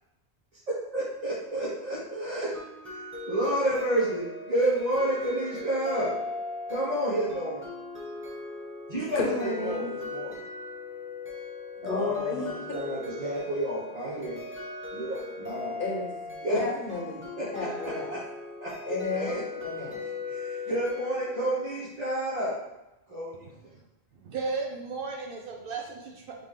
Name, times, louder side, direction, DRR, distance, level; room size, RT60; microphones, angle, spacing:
voice 1, 0.9-2.5 2.8-3.0 3.3-6.1 6.7-7.6 8.9-10.4 11.8-14.4 14.9-15.7 16.4-16.6 17.4-18.2 18.6-19.4 20.2-22.5 23.1-23.4, right 1 dB, 40° right, -9 dB, 1.2 m, -30 dB
sound 1, 2.5-21.7, left 3 dB, 15° right, 0.6 m, -39 dB
voice 2, 9.2-9.9 11.8-12.5 15.8-18.1 18.9-19.3 19.6-20.0, left 3 dB, 55° left, -1 dB, 1.1 m, -32 dB
voice 3, 23.4-23.8 24.2-26.3, right 4 dB, 65° right, 0 dB, 0.7 m, -35 dB
4.1 x 3.4 x 3.6 m, 0.95 s
omnidirectional pair, 1.1 m